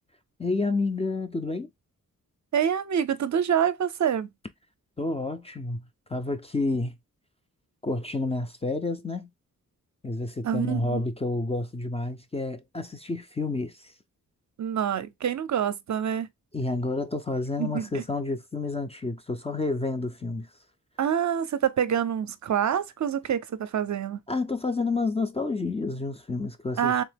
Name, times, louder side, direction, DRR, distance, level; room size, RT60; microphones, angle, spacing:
voice 1, 0.4-1.7 5.0-7.0 7.8-9.3 10.0-13.9 16.5-20.5 24.3-27.0, left 3 dB, 20° left, 0.3 m, -29 dB
voice 2, 2.5-4.3 10.4-11.0 14.6-16.3 17.6-18.0 21.0-24.2 26.8-27.0, right 8 dB, 60° right, 0.5 m, -26 dB
3.4 x 2.8 x 3.3 m
wide cardioid pair, 105°, 33 cm